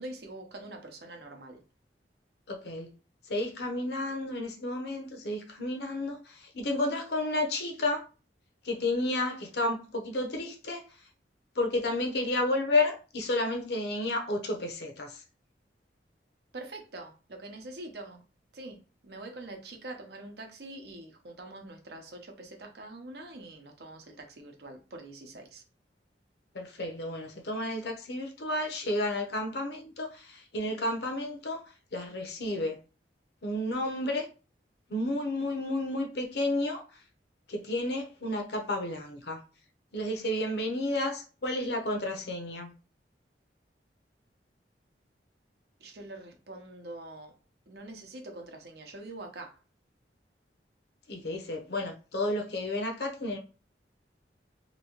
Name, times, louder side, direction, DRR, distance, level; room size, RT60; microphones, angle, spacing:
voice 1, 0.0-1.6 16.5-18.2 18.5-25.6 45.8-47.3 47.7-49.6, right 2 dB, 60° right, 0.7 m, -44 dB
voice 2, 2.5-2.9 3.3-8.0 8.6-10.9 11.6-15.1 26.5-31.6 31.9-32.8 33.4-34.3 34.9-36.8 37.5-39.4 39.9-42.7 51.1-53.4, left 1 dB, 65° left, 0.7 m, -31 dB
3.0 x 2.7 x 2.8 m
head